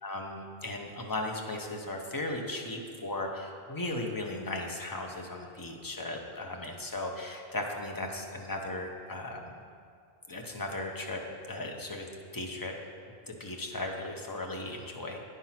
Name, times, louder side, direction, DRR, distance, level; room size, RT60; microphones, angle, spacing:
voice 1, 0.0-9.6 10.3-11.2 11.5-12.1 12.3-12.7 13.3-15.2, left 2 dB, 25° left, 1 dB, 0.7 m, -36 dB
9.7 x 4.4 x 5.7 m, 2.3 s
omnidirectional pair, 1.0 m